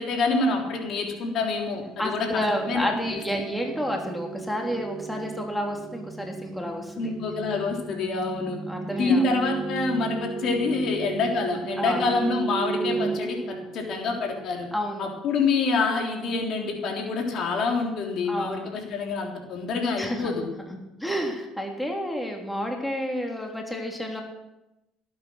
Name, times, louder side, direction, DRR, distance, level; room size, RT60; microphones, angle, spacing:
voice 1, 0.0-3.2 7.0-8.6 8.9-14.7 15.0-20.4, left 3 dB, 55° left, 2 dB, 3.6 m, -27 dB
sound 1, 1.7-14.4, right 4 dB, 35° right, 1.5 m, -35 dB
voice 2, 2.0-7.1 8.7-9.3 11.8-12.0 14.7-15.1 18.3-18.6 20.0-20.4 20.7-24.2, equal, 5° left, 1 dB, 3.2 m, -30 dB
18.0 x 8.8 x 6.4 m, 0.93 s
supercardioid pair, 85°, 0 cm